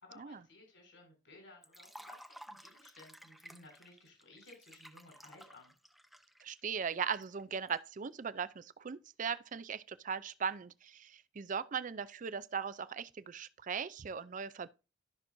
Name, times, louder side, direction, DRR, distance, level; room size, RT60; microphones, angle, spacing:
voice 1, 0.0-5.7, left 2 dB, 75° left, 5.2 m, -58 dB
Liquid, 1.6-7.8, equal, ahead, 0.7 m, -55 dB
voice 2, 6.4-14.7, right 6 dB, 45° right, 0.5 m, -39 dB
13.0 x 6.2 x 2.6 m
head